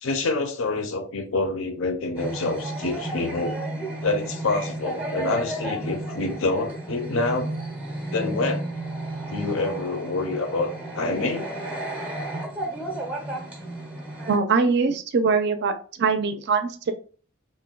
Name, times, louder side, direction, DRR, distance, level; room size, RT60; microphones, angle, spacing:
voice 1, 0.0-3.6 4.0-7.5 8.1-8.7 9.3-11.5, left 3 dB, 70° left, 0.6 m, -27 dB
sound 1, 2.2-14.4, right 1 dB, 5° right, 0.5 m, -33 dB
voice 2, 14.3-16.9, right 4 dB, 55° right, 0.4 m, -22 dB
2.5 x 2.1 x 3.8 m
head